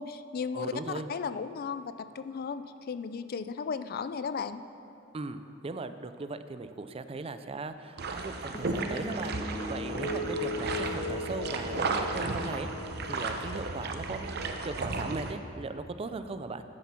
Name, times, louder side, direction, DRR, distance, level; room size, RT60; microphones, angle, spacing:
voice 1, 0.0-4.6, left 5 dB, 50° left, 12 dB, 0.4 m, -35 dB
voice 2, 0.5-1.1 5.1-9.4 9.7-12.7 13.0-16.6, right 3 dB, 30° right, 11 dB, 0.4 m, -38 dB
sound 1, 8.0-15.3, right 3 dB, 55° right, 0.8 m, -34 dB
sound 2, 8.5-15.1, left 1 dB, 30° left, 1.9 m, -38 dB
10.0 x 9.3 x 5.9 m, 2.6 s
head